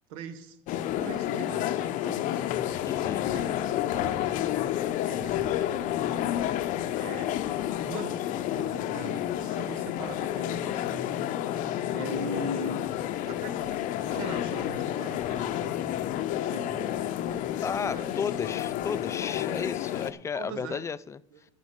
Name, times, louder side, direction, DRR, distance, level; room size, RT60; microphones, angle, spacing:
voice 1, 0.1-0.6 1.0-2.2 3.3-3.6 3.9-4.4 5.0-6.0 7.0-7.5 7.8-11.2 11.9-12.9 13.2-15.6 16.4-17.0 17.8-18.2 19.5-19.6 20.3-20.8 21.3-21.5, right 4 dB, 80° right, 9 dB, 1.5 m, -41 dB
sound 1, 0.7-20.1, left 12 dB, 50° left, 0.7 m, -30 dB
voice 2, 2.9-3.2 17.6-21.2, left 6 dB, 15° left, 17 dB, 0.4 m, -33 dB
9.5 x 6.1 x 8.1 m, 0.71 s
supercardioid pair, 135°, 17 cm